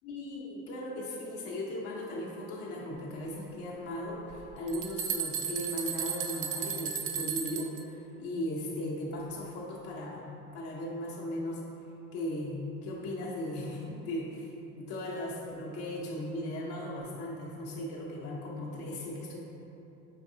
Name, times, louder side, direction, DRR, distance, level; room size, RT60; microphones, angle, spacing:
voice 1, 0.0-10.2 10.5-11.6 12.1-14.5 14.8-19.4, left 1 dB, 70° left, -5 dB, 0.9 m, -37 dB
sound 1, 4.3-7.8, right 7 dB, 45° right, 0.5 m, -34 dB
6.6 x 2.6 x 2.7 m, 2.9 s
hypercardioid pair, 80°, 45 cm